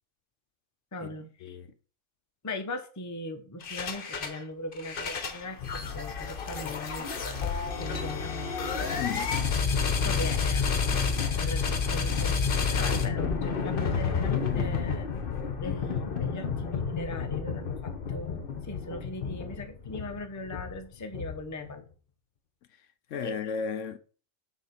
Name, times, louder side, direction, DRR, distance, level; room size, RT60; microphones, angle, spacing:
voice 1, 0.9-1.6 2.4-7.1 7.8-8.3 10.0-10.6 10.9-11.0 11.3-15.1 15.6-21.8 23.2-23.3, left 1 dB, 20° left, 0.6 m, -39 dB
sound 1, 3.6-4.4 4.7-21.7, left 5 dB, 45° left, 1.0 m, -30 dB
voice 2, 9.0-9.4 23.1-24.0, left 6 dB, 70° left, 0.9 m, -34 dB
6.5 x 3.7 x 5.8 m
omnidirectional pair, 1.4 m